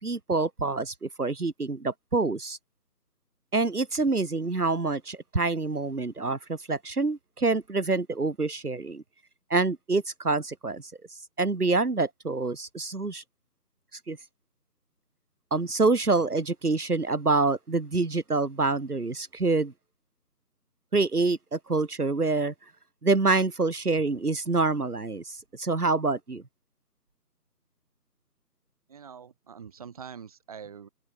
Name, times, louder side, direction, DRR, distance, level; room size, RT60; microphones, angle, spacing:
voice 1, 0.0-2.6 3.5-9.0 9.5-10.8 11.4-13.2 14.1-14.2 15.5-19.7 20.9-22.5 23.0-26.4, right 3 dB, 65° right, 4.9 m, -26 dB
voice 2, 28.9-30.9, right 7 dB, 20° right, 5.8 m, -44 dB
open air
figure-of-eight pair, 170°, 49 cm